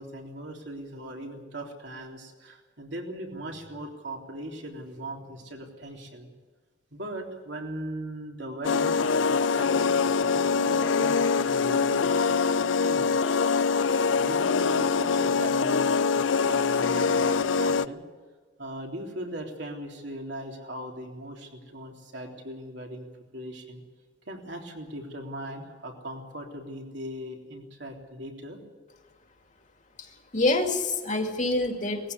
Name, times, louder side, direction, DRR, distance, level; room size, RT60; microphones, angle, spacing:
voice 1, 0.0-6.3 6.9-13.3 14.2-18.0 18.6-23.1 23.3-23.8 24.3-28.6, right 1 dB, 65° right, 1 dB, 3.5 m, -39 dB
sound 1, 8.6-17.9, left 5 dB, 90° left, 0.5 m, -24 dB
voice 2, 30.0-32.1, left 2 dB, 40° left, 4 dB, 2.4 m, -27 dB
20.0 x 15.5 x 9.7 m, 1.4 s
head